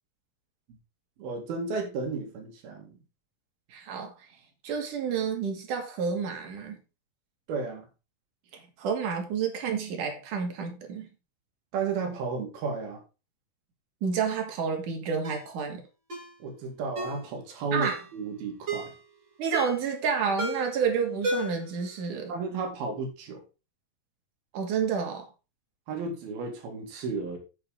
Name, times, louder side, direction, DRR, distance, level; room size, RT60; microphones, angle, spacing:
voice 1, 1.2-2.9 7.5-7.9 11.7-13.0 16.4-18.9 22.3-23.4 25.9-27.4, right 4 dB, 85° right, 3 dB, 4.1 m, -33 dB
voice 2, 3.7-4.3 4.6-6.8 8.5-11.1 14.0-15.8 17.7-18.0 19.4-22.3 24.5-25.3, right 6 dB, 60° right, 3 dB, 3.8 m, -30 dB
Ringtone, 15.2-15.5 16.1-16.3 17.0-17.2 17.8-18.1 18.7-19.0 19.5-19.9 20.4-20.8 21.2-21.7 22.0-22.1, right 1 dB, 35° right, 3.3 m, -33 dB
9.1 x 8.6 x 3.8 m, 0.30 s
omnidirectional pair, 4.1 m